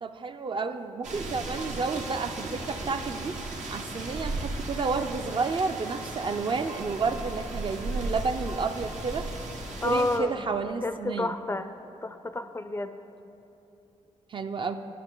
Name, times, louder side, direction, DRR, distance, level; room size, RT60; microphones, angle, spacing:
voice 1, 0.0-3.4 3.7-9.3 9.8-11.3 14.3-14.7, right 4 dB, 40° right, 8 dB, 0.4 m, -31 dB
sound 1, 1.0-10.2, right 2 dB, 80° right, 1.0 m, -36 dB
voice 2, 9.8-10.5 10.8-11.7 12.0-12.9, left 2 dB, 20° left, 9 dB, 0.4 m, -30 dB
11.0 x 6.4 x 3.8 m, 2.9 s
cardioid pair, 75°, 12 cm